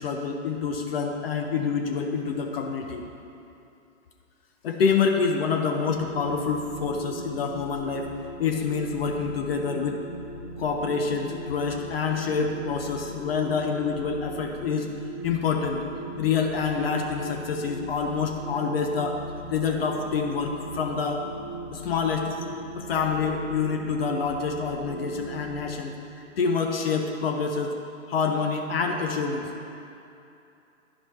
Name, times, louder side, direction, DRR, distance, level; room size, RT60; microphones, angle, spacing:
voice 1, 0.0-3.0 4.6-8.1 8.4-10.0 10.6-14.9 15.2-15.8 16.2-19.2 19.5-21.2 21.7-22.4 22.8-25.9 26.4-27.7 28.1-29.5, left 5 dB, 50° left, 3 dB, 0.6 m, -27 dB
sound 1, 5.8-25.6, right 1 dB, 5° left, 0.3 m, -39 dB
10.5 x 5.9 x 3.2 m, 2.8 s
figure-of-eight pair, 115°, 40 cm